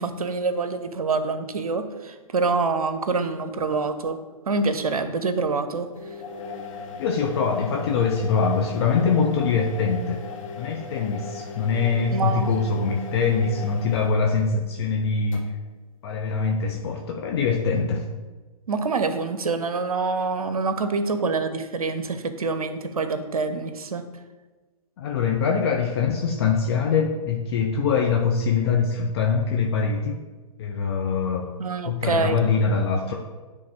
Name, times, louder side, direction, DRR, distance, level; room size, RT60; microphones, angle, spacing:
voice 1, 0.0-4.2 4.5-5.9 12.1-12.5 18.7-24.0 31.6-32.4, right 4 dB, 75° right, 10 dB, 0.7 m, -26 dB
sound 1, 5.9-14.3 15.3-15.4, left 5 dB, 60° left, 1.2 m, -38 dB
voice 2, 7.0-10.2 10.6-15.5 16.0-18.0 25.0-30.2 30.6-31.5 31.9-33.1, left 5 dB, 45° left, 1 dB, 0.6 m, -23 dB
9.7 x 3.3 x 3.6 m, 1.3 s
figure-of-eight pair, 120°, 19 cm